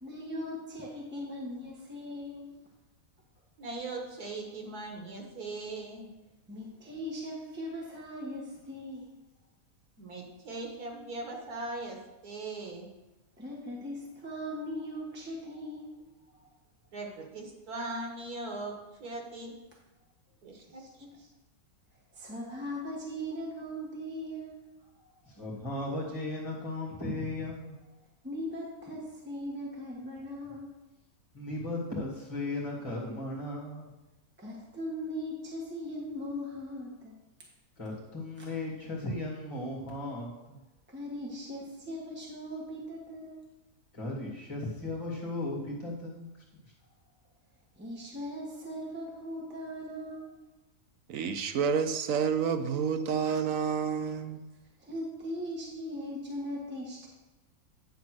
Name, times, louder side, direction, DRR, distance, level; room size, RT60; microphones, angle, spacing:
voice 1, 0.0-2.5 6.5-9.1 13.4-16.5 20.8-21.3 22.1-24.6 28.2-30.7 34.4-37.1 40.9-43.4 47.7-50.4 54.8-57.1, equal, 10° right, -3 dB, 1.2 m, -39 dB
voice 2, 3.6-6.1 10.0-12.9 16.9-19.5 20.4-20.8, right 2 dB, 85° right, 1 dB, 2.0 m, -39 dB
voice 3, 25.3-27.7 31.3-33.9 37.8-40.6 43.9-46.3, left 2 dB, 20° left, -5 dB, 2.2 m, -36 dB
voice 4, 51.1-54.4, right 6 dB, 70° right, 8 dB, 1.0 m, -29 dB
9.4 x 4.2 x 6.3 m, 1.0 s
omnidirectional pair, 1.6 m